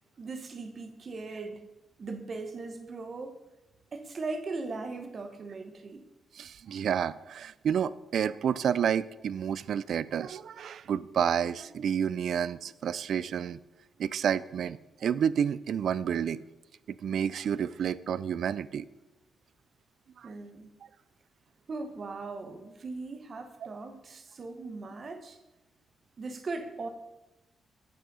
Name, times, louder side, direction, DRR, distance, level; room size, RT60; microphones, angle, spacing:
voice 1, 0.2-1.6 2.0-3.4 3.9-6.0 20.2-20.7 21.7-25.4 26.2-26.9, right 3 dB, 45° right, 7 dB, 1.2 m, -39 dB
voice 2, 6.3-13.6 14.0-16.4 16.9-18.9 20.2-20.3, right 8 dB, 70° right, 18 dB, 0.3 m, -30 dB
8.6 x 6.2 x 5.4 m, 0.99 s
cardioid pair, 105°, 0 cm